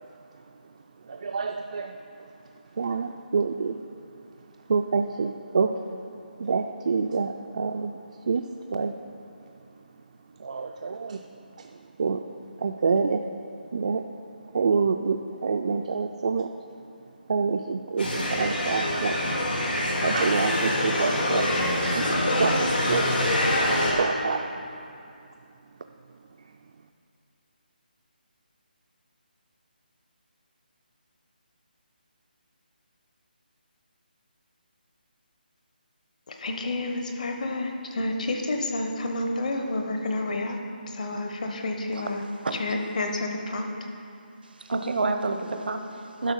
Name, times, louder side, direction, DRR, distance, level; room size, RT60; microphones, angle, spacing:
voice 1, 1.1-1.9 2.8-3.8 4.7-6.0 6.4-8.0 8.3-8.4 8.7-8.9 10.4-11.2 11.6-11.7 12.0-12.2 12.6-13.2 13.7-14.0 14.5-16.5 17.3-19.2 20.0-23.2 23.7-24.6, right 5 dB, 45° right, 5 dB, 0.3 m, -27 dB
sound 1, 18.0-23.9, left 1 dB, 85° left, 2.5 m, -25 dB
voice 2, 36.3-40.6 40.9-42.2 42.5-43.7, left 2 dB, 50° left, 3 dB, 1.0 m, -29 dB
voice 3, 44.4-46.3, right 3 dB, 70° right, 6 dB, 0.7 m, -29 dB
11.5 x 5.6 x 5.4 m, 2.6 s
figure-of-eight pair, 170°, 5 cm